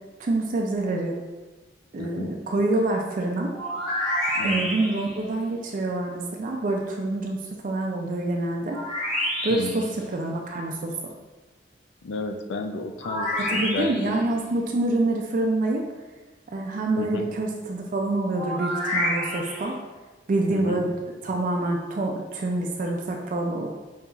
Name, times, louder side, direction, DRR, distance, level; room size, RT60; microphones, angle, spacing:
voice 1, 0.2-1.2 1.9-3.5 4.4-9.0 9.4-9.9 10.1-11.1 13.2-15.9 16.5-19.8 20.3-20.9 21.2-23.7, right 2 dB, 45° right, 1 dB, 0.3 m, -26 dB
voice 2, 2.0-2.3 4.3-4.6 9.5-9.9 12.0-14.2 17.0-17.3 20.5-20.9, left 3 dB, 85° left, 5 dB, 0.4 m, -32 dB
sound 1, 3.5-5.2 8.7-9.9 13.0-14.2 18.3-19.7, left 1 dB, 35° left, 1.4 m, -28 dB
5.3 x 2.8 x 2.3 m, 1.2 s
head